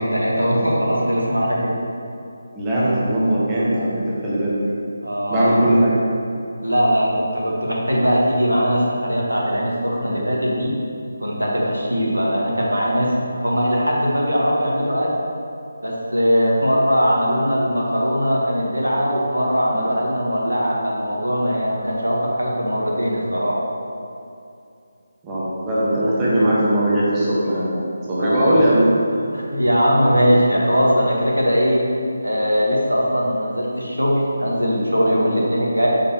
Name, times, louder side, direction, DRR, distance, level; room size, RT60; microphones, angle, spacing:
voice 1, 0.0-1.7 5.0-5.6 6.6-10.7 11.2-15.1 15.8-23.6 28.2-28.5 29.3-31.8 32.2-35.9, equal, 85° right, -3 dB, 1.2 m, -20 dB
voice 2, 2.5-4.6 5.3-6.0 25.2-27.8 28.1-28.9, right 1 dB, 15° right, -9 dB, 1.1 m, -19 dB
6.7 x 5.1 x 2.9 m, 2.5 s
figure-of-eight pair, 155°, 0 cm